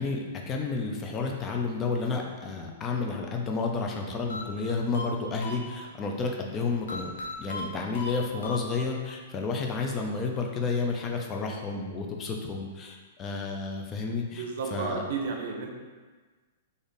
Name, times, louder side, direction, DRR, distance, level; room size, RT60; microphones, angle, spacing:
voice 1, 0.0-7.1 7.4-15.0, left 4 dB, 20° left, 1 dB, 0.5 m, -31 dB
sound 1, 4.3-6.1 6.9-9.1, left 2 dB, 85° left, 0.6 m, -39 dB
voice 2, 14.4-15.7, right 4 dB, 65° right, 1 dB, 0.6 m, -32 dB
3.4 x 2.6 x 3.9 m, 1.4 s
hypercardioid pair, 150°, 0 cm